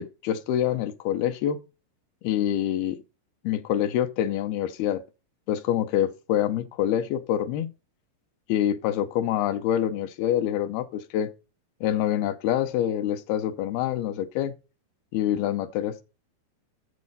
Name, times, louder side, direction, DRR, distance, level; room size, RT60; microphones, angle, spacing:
voice 1, 0.0-1.6 2.2-3.0 3.4-5.0 5.5-7.7 8.5-11.3 11.8-14.6 15.1-16.0, left 11 dB, 90° left, 2.8 m, -26 dB
8.4 x 7.5 x 4.1 m
omnidirectional pair, 4.2 m